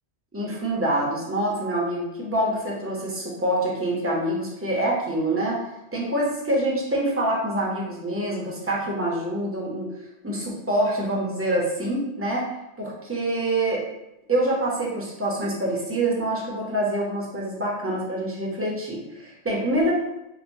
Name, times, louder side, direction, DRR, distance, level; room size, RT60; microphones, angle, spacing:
voice 1, 0.3-5.6 5.9-9.9 10.2-12.5 12.8-13.9 14.3-19.9, right 1 dB, 15° right, -4 dB, 0.5 m, -26 dB
4.9 x 2.0 x 2.5 m, 0.91 s
omnidirectional pair, 1.1 m